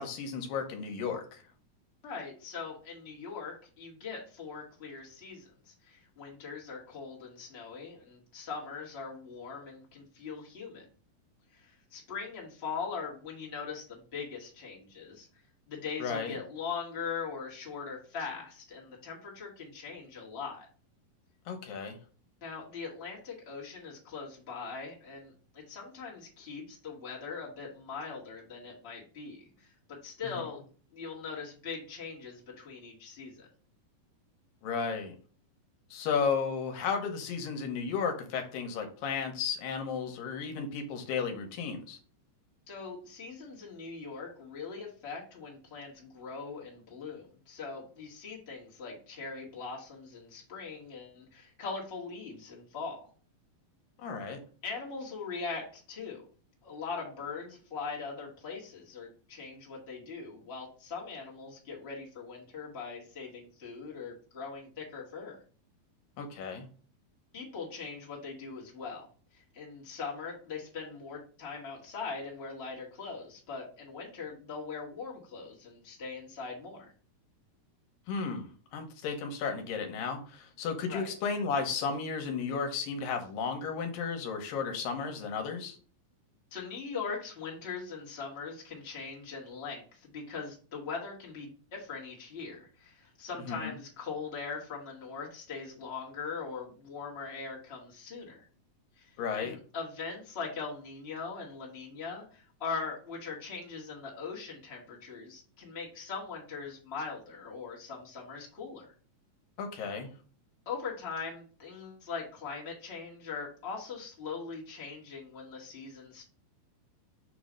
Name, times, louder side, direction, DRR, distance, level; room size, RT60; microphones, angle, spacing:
voice 1, 0.0-1.4 16.0-16.4 21.5-22.0 34.6-35.2 35.9-42.0 54.0-54.4 66.2-66.7 78.1-85.8 93.5-93.7 99.2-99.6 109.6-110.1, left 5 dB, 80° left, 5 dB, 2.6 m, -34 dB
voice 2, 2.0-10.8 11.5-15.3 15.7-20.7 22.4-30.6 30.9-33.5 42.7-53.1 54.6-56.2 56.6-65.4 67.3-69.1 69.3-76.9 80.9-81.1 86.5-98.5 98.9-108.9 110.6-116.2, left 5 dB, 25° left, -4 dB, 1.6 m, -41 dB
6.7 x 3.1 x 5.1 m, 0.40 s
omnidirectional pair, 4.0 m